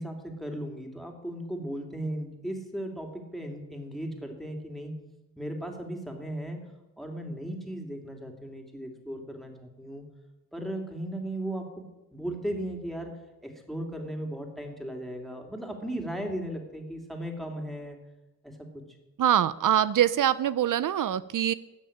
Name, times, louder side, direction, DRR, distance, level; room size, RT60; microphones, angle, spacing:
voice 1, 0.0-5.0 5.4-6.6 7.0-10.0 10.5-11.6 12.1-13.1 13.4-18.0 18.4-18.7, right 1 dB, ahead, 3 dB, 2.8 m, -36 dB
voice 2, 19.2-21.5, right 10 dB, 75° right, 16 dB, 0.5 m, -24 dB
14.0 x 6.5 x 10.0 m, 1.0 s
wide cardioid pair, 85°, 32 cm